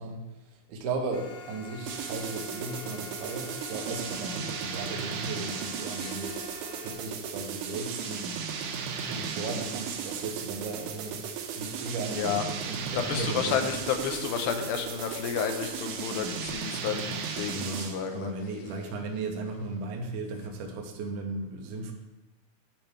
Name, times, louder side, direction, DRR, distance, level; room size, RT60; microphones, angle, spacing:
voice 1, 0.0-8.4 9.0-13.6 17.5-21.9, right 3 dB, 75° right, 2 dB, 2.0 m, -36 dB
sound 1, 1.1-6.9, left 4 dB, 45° left, 1.9 m, -46 dB
sound 2, 1.9-18.1, right 6 dB, 90° right, 1.8 m, -35 dB
voice 2, 12.9-18.3, left 7 dB, 80° left, 6 dB, 2.4 m, -31 dB
8.9 x 3.4 x 6.6 m, 1.0 s
omnidirectional pair, 4.5 m